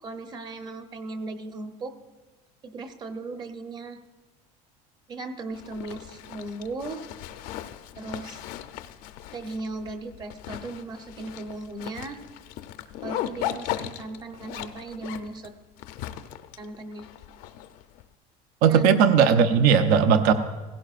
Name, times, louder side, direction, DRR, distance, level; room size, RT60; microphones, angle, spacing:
voice 1, 0.0-1.9 2.6-4.0 5.1-7.0 8.0-8.4 9.3-12.2 13.0-15.5 16.6-17.1 18.7-18.8, right 3 dB, 30° right, 7 dB, 0.9 m, -37 dB
Zipper (clothing), 5.5-18.0, left 12 dB, 65° left, 0.6 m, -38 dB
voice 2, 18.6-20.3, right 7 dB, 70° right, 9 dB, 0.7 m, -18 dB
17.5 x 16.0 x 2.5 m, 1.2 s
cardioid pair, 150°, 15 cm